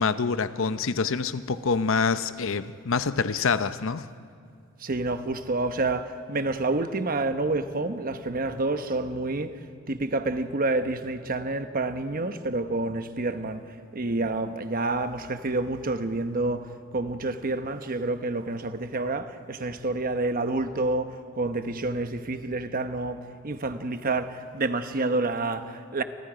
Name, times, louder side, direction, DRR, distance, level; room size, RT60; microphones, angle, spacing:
voice 1, 0.0-4.1, left 5 dB, 65° left, 0.7 m, -26 dB
voice 2, 4.8-9.6 9.9-13.6 13.9-26.0, right 2 dB, 40° right, 1.0 m, -28 dB
29.5 x 25.0 x 5.0 m
head